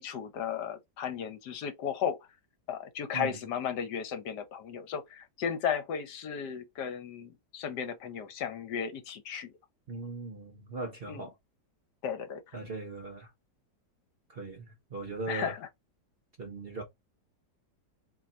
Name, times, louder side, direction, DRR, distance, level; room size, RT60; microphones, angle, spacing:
voice 1, 0.0-2.2 2.7-9.5 11.1-11.2 12.0-12.5 15.3-15.6, left 7 dB, 75° left, 1.4 m, -35 dB
voice 2, 9.9-11.3 12.5-13.3 14.3-15.5 16.4-16.8, right 3 dB, 50° right, 0.7 m, -39 dB
3.8 x 3.0 x 4.1 m
omnidirectional pair, 1.9 m